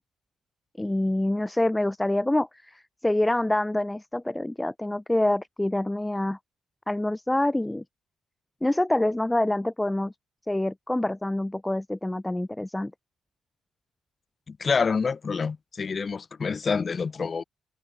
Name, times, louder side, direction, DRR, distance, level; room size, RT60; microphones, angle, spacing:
voice 1, 0.8-6.4 6.9-7.8 8.6-10.1 10.5-12.9, left 1 dB, 10° left, 3.2 m, -26 dB
voice 2, 14.5-17.4, left 5 dB, 35° left, 0.9 m, -27 dB
cardioid pair, 90°, 0 cm